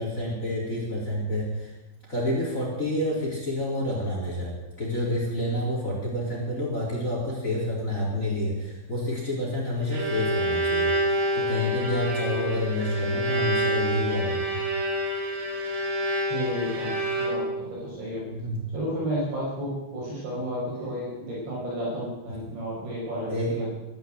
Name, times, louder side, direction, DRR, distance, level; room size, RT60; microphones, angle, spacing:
voice 1, 0.0-1.7 2.1-10.9 11.3-14.6 18.4-18.6 23.3-23.5, left 1 dB, 20° left, -3 dB, 3.9 m, -28 dB
Bowed string instrument, 9.6-17.7, right 1 dB, 85° right, 5.9 m, -27 dB
voice 2, 16.3-18.2 18.7-23.7, equal, 65° right, -7 dB, 8.1 m, -32 dB
14.0 x 12.5 x 7.9 m, 0.96 s
omnidirectional pair, 5.5 m